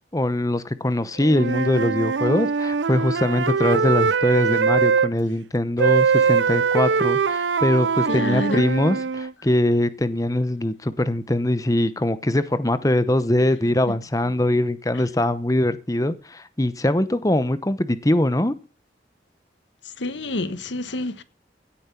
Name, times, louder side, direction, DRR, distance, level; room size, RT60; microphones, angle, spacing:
voice 1, 0.1-18.5, left 1 dB, 20° left, 0.9 m, -22 dB
Wind instrument woodwind instrument, 1.2-5.1 5.8-9.3, right 5 dB, 90° right, 0.6 m, -22 dB
voice 2, 8.1-8.6 20.0-21.2, left 2 dB, 90° left, 1.3 m, -28 dB
16.5 x 8.7 x 5.8 m
head